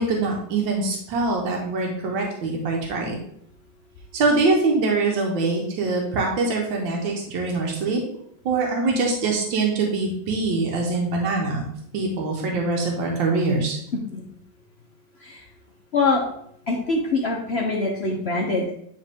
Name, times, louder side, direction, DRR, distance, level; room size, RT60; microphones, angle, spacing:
voice 1, 0.0-3.2 4.1-8.0 8.4-11.6 11.9-13.8, right 3 dB, 85° right, 0 dB, 1.7 m, -23 dB
voice 2, 15.9-16.2 16.7-18.7, left 3 dB, 55° left, -1 dB, 0.7 m, -23 dB
9.6 x 3.4 x 3.5 m, 0.70 s
omnidirectional pair, 2.0 m